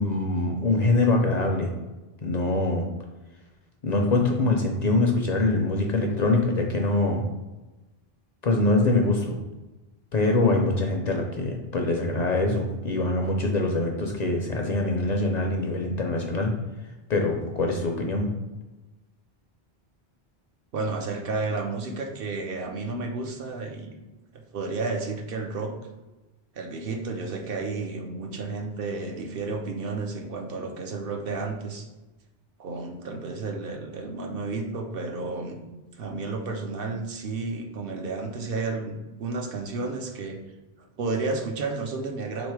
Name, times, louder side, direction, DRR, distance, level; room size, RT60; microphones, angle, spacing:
voice 1, 0.0-1.7 2.2-2.9 3.8-7.2 8.4-9.4 10.1-16.5 17.1-18.3, left 2 dB, 50° left, 2 dB, 0.5 m, -24 dB
voice 2, 20.7-23.9 24.3-25.7 26.5-31.9 32.6-35.6 35.9-40.4 40.8-42.5, right 3 dB, 65° right, 2 dB, 0.8 m, -32 dB
3.5 x 3.1 x 4.6 m, 1.1 s
omnidirectional pair, 1.1 m